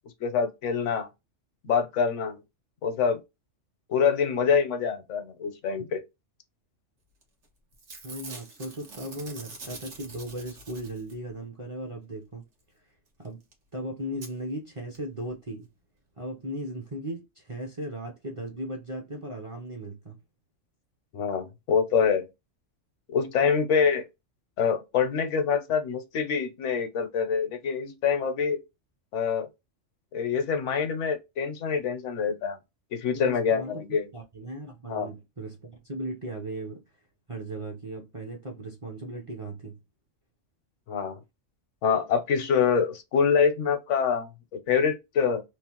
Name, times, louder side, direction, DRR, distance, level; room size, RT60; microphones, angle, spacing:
voice 1, 0.2-1.1 1.6-2.4 2.8-3.2 3.9-6.0 21.1-22.3 23.1-24.1 24.6-28.6 29.1-29.5 30.1-32.6 32.9-34.1 34.9-35.1 40.9-41.2 41.8-45.4, left 6 dB, 80° left, 1.0 m, -25 dB
Packing tape duct tape / Tearing, 7.2-7.5 7.7-11.3 13.2-13.3 13.5-13.6 14.2-14.3 14.9-15.0 15.3-15.4, right 3 dB, 75° right, 1.2 m, -45 dB
voice 2, 8.0-12.5 13.2-13.4 13.7-15.7 16.2-20.2 23.4-23.7 33.1-36.8 37.3-39.8, right 1 dB, 35° right, 0.5 m, -37 dB
3.0 x 2.0 x 2.9 m
omnidirectional pair, 1.3 m